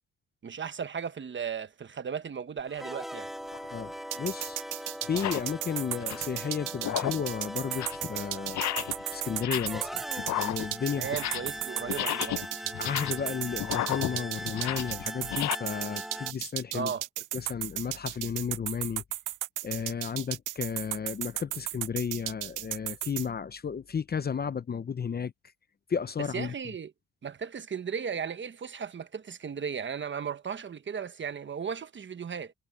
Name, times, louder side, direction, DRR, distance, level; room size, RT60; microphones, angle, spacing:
voice 1, 0.4-3.3 11.0-12.5 16.7-17.0 26.3-26.9 27.2-32.5, right 7 dB, 40° right, 1.2 m, -36 dB
sound 1, 2.6-16.3, equal, ahead, 1.7 m, -40 dB
sound 2, 3.5-3.7 4.4-4.5 5.0-5.5 5.9-6.4 6.8-7.3 7.6-8.1 8.5-9.0 9.3-9.9 10.2-11.6 11.9-15.6, left 13 dB, 70° left, 0.7 m, -33 dB
voice 2, 3.7-4.6 5.1-8.6 9.1-10.0 10.4-11.0 12.8-16.9 17.3-19.0 19.6-25.3 25.9-26.5, left 6 dB, 30° left, 0.8 m, -33 dB
sound 3, 4.1-23.3, right 15 dB, 85° right, 0.9 m, -35 dB
cardioid pair, 90°, 30 cm